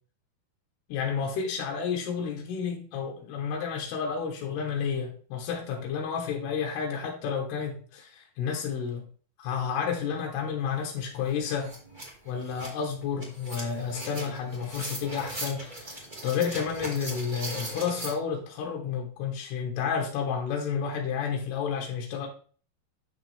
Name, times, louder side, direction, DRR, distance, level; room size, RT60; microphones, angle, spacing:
voice 1, 0.9-9.1 9.4-11.7 12.3-22.3, left 6 dB, 80° left, 1 dB, 3.2 m, -31 dB
sound 1, 10.8-10.9 11.2-18.1, right 1 dB, 25° right, 0.9 m, -39 dB
9.2 x 6.7 x 3.4 m, 0.42 s
omnidirectional pair, 4.7 m